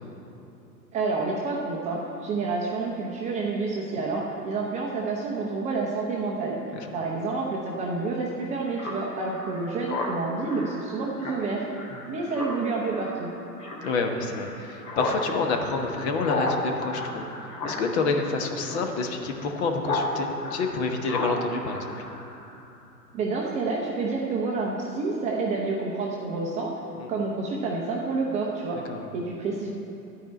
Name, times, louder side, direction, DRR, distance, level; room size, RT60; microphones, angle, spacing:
voice 1, 0.9-6.6 6.9-11.6 12.1-13.3 23.1-26.7 27.1-28.8 29.1-29.7, right 3 dB, 15° right, -2 dB, 0.6 m, -29 dB
Speech synthesizer, 8.8-20.1 20.4-22.6, left 2 dB, 70° left, 2.5 m, -34 dB
voice 2, 13.8-17.3 17.6-21.9 26.9-27.1 28.9-29.1, left 3 dB, 40° left, 4 dB, 1.2 m, -28 dB
12.5 x 4.8 x 8.4 m, 2.8 s
figure-of-eight pair, 110°, 50 cm